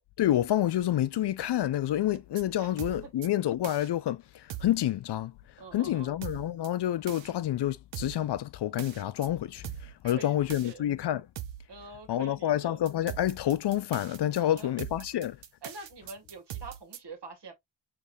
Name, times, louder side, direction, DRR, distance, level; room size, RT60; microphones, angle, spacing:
voice 1, 0.2-4.2 4.6-5.3 5.7-9.7 10.0-11.2 12.1-15.4, left 12 dB, 65° left, 0.5 m, -28 dB
sound 1, 2.1-2.4 2.8-3.3 3.6-3.9 4.5-4.8 6.2-6.7 7.1-7.3 7.9-8.2 8.8-9.3 9.6-10.1 10.5-10.7 11.4-11.7 12.9-17.0, right 11 dB, 85° right, 0.7 m, -41 dB
voice 2, 2.6-3.1 5.6-6.2 10.0-10.8 11.7-12.8 14.4-14.8 15.1-15.2 15.6-17.5, right 4 dB, 65° right, 1.9 m, -46 dB
4.8 x 3.3 x 2.6 m
cardioid pair, 70°, 45 cm